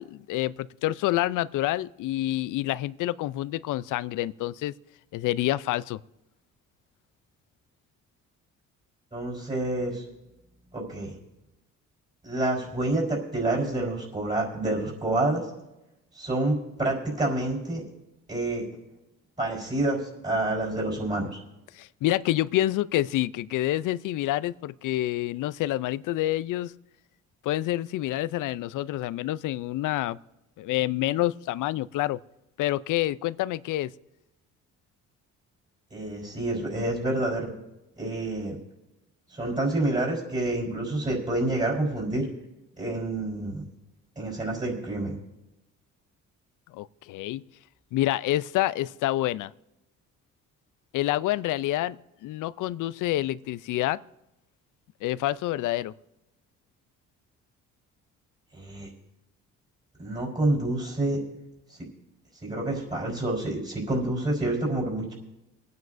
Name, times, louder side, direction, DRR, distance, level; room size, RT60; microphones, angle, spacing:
voice 1, 0.0-4.7 5.1-6.0 21.7-26.7 27.4-30.2 30.6-32.2 32.6-33.9 46.7-47.4 47.9-49.5 50.9-52.0 52.2-54.0 55.0-55.9, left 15 dB, 75° left, 18 dB, 0.5 m, -27 dB
voice 2, 9.1-10.0 10.7-11.2 12.2-15.5 16.1-17.8 18.3-18.7 19.4-21.4 35.9-37.5 38.0-38.6 39.3-42.3 42.8-43.6 44.2-45.1 58.5-58.9 60.0-61.2 61.7-61.8 62.4-65.1, right 2 dB, 25° right, -5 dB, 4.1 m, -28 dB
24.5 x 9.5 x 2.6 m, 0.96 s
cardioid pair, 80°, 31 cm